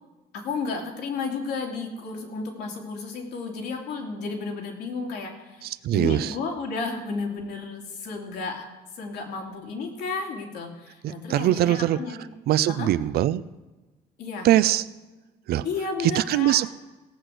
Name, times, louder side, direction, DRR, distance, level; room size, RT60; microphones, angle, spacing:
voice 1, 0.3-8.6 9.0-12.2 12.7-12.9 14.2-14.5 15.6-16.6, left 4 dB, 80° left, 1 dB, 2.7 m, -32 dB
voice 2, 5.6-6.4 11.0-12.0 12.5-13.4 14.4-14.8 15.5-15.7 16.0-16.7, right 13 dB, 65° right, 16 dB, 0.5 m, -22 dB
17.0 x 6.3 x 7.8 m, 1.2 s
cardioid pair, 110°, 17 cm